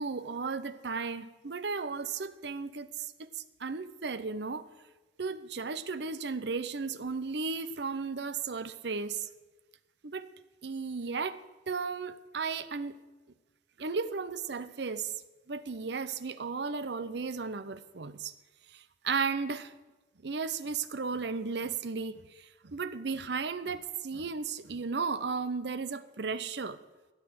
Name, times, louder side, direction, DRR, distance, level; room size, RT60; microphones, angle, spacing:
voice 1, 0.0-2.9 3.6-4.6 5.2-9.3 10.0-10.3 10.6-13.0 13.8-15.1 15.5-18.3 19.0-19.7 20.2-22.2 22.6-26.8, right 4 dB, 65° right, 13 dB, 0.7 m, -34 dB
14.0 x 8.4 x 7.6 m, 1.2 s
head